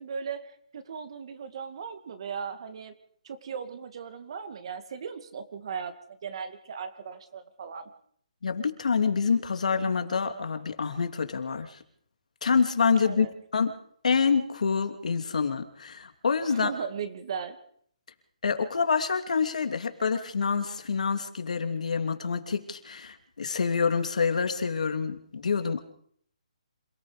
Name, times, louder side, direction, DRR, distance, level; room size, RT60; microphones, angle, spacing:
voice 1, 0.0-2.9 3.2-5.9 6.2-7.9 13.0-13.3 16.5-17.6, right 6 dB, 45° right, 9 dB, 2.2 m, -37 dB
voice 2, 8.4-11.8 12.4-13.3 13.5-13.8 14.0-16.7 18.4-25.8, left 5 dB, 75° left, 7 dB, 2.8 m, -27 dB
27.5 x 18.5 x 5.1 m, 0.63 s
hypercardioid pair, 165°, 4 cm